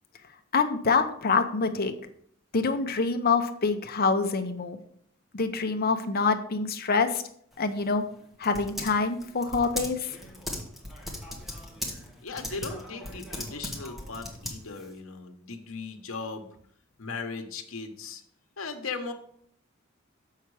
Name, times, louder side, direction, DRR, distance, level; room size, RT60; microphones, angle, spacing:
voice 1, 0.5-1.9 2.5-4.8 5.3-7.2 7.6-8.0 8.4-10.2, left 4 dB, 50° left, 7 dB, 0.8 m, -26 dB
Typing, 7.5-15.0, left 1 dB, ahead, 1.4 m, -39 dB
voice 2, 12.2-16.5 17.0-18.2 18.6-19.1, left 4 dB, 85° left, 5 dB, 1.1 m, -37 dB
7.1 x 5.7 x 4.8 m, 0.64 s
head